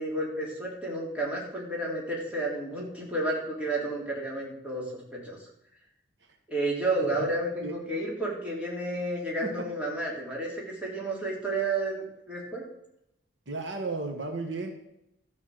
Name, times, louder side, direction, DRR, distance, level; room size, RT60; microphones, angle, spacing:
voice 1, 0.0-4.8 5.1-5.5 6.5-12.6, right 2 dB, 5° right, -4 dB, 3.4 m, -31 dB
voice 2, 13.5-14.7, right 3 dB, 65° right, 4 dB, 1.5 m, -34 dB
13.5 x 5.8 x 7.7 m, 0.82 s
head